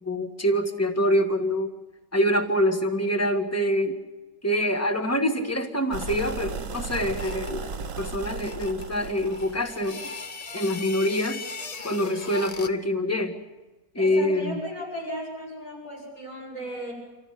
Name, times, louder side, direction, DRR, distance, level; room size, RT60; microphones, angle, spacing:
voice 1, 0.0-1.7 2.1-4.0 4.4-10.0 10.5-11.4 11.8-13.4 13.9-14.6, equal, 10° left, 6 dB, 1.4 m, -25 dB
sound 1, 5.9-9.9, right 4 dB, 65° right, 1.4 m, -36 dB
sound 2, 6.9-7.6 8.2-12.9, left 3 dB, 35° left, 0.8 m, -39 dB
voice 2, 13.9-16.9, equal, 85° left, -3 dB, 8.6 m, -35 dB
26.5 x 14.5 x 9.5 m, 1.2 s
omnidirectional pair, 1.5 m